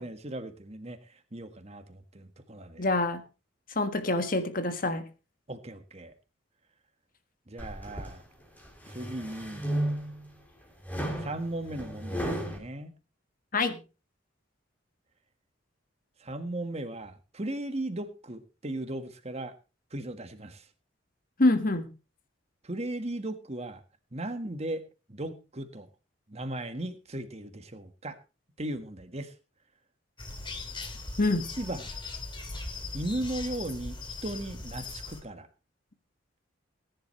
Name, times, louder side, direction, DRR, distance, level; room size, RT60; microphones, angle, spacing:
voice 1, 0.0-2.9 5.5-6.1 7.5-8.2 8.9-9.7 11.2-12.9 16.2-19.5 19.9-20.6 22.6-23.8 24.1-24.8 25.1-25.9 26.3-28.2 28.6-29.3 31.6-31.9 32.9-34.0 34.2-35.5, right 1 dB, 35° right, 8 dB, 1.6 m, -37 dB
voice 2, 2.8-3.2 3.7-5.0 13.5-13.8 21.4-21.9 31.2-31.5, left 2 dB, 45° left, 9 dB, 1.6 m, -26 dB
sound 1, 7.6-8.1 8.6-10.3 10.8-12.6, right 1 dB, 10° left, 3.4 m, -33 dB
sound 2, 30.2-35.2, left 3 dB, 25° left, 2.5 m, -39 dB
19.5 x 10.5 x 3.2 m, 0.31 s
head